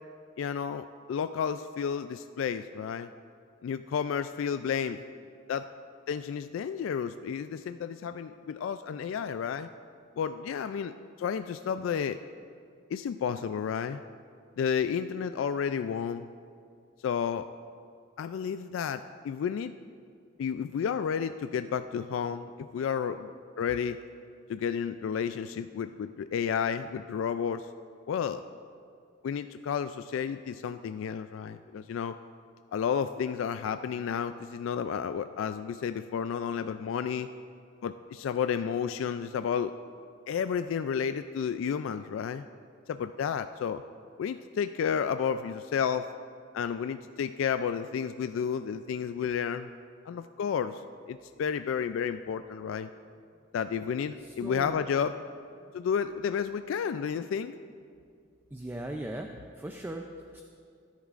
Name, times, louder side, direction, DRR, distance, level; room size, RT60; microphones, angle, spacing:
voice 1, 0.4-3.1 3.6-5.0 5.5-5.7 6.1-9.7 10.2-12.2 12.9-14.0 14.6-16.3 17.0-17.5 18.2-19.7 20.4-23.3 23.6-24.0 24.5-27.7 28.1-28.4 29.2-32.2 32.7-37.3 37.8-39.7 40.3-42.4 42.9-43.8 44.2-46.1 46.5-49.7 50.1-50.8 51.1-52.9 53.5-55.2 55.7-57.5, left 7 dB, 75° left, 10 dB, 0.3 m, -31 dB
voice 2, 54.4-54.8 58.5-59.3 59.6-60.1 60.3-60.4, right 1 dB, 10° right, 3 dB, 0.4 m, -37 dB
17.0 x 10.5 x 2.5 m, 2.3 s
head